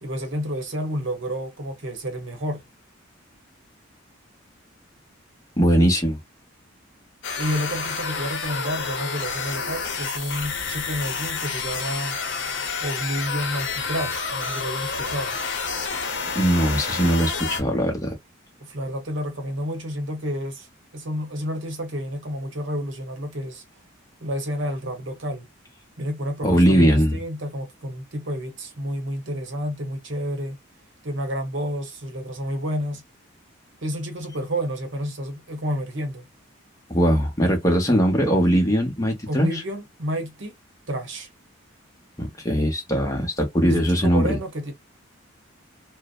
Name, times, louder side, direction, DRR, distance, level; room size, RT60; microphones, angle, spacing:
voice 1, 0.0-2.6 7.3-12.2 12.8-15.4 18.6-20.7 20.9-23.6 24.2-25.5 26.0-30.6 31.0-33.0 33.8-36.3 39.3-40.5 40.9-41.3 43.7-44.7, equal, 60° right, 0.8 m, -30 dB
voice 2, 5.6-6.2 16.3-18.2 26.4-27.2 36.9-39.5 42.2-44.4, equal, 15° left, 0.8 m, -20 dB
sound 1, 7.2-17.6, left 5 dB, 60° left, 0.8 m, -29 dB
2.6 x 2.1 x 2.3 m
head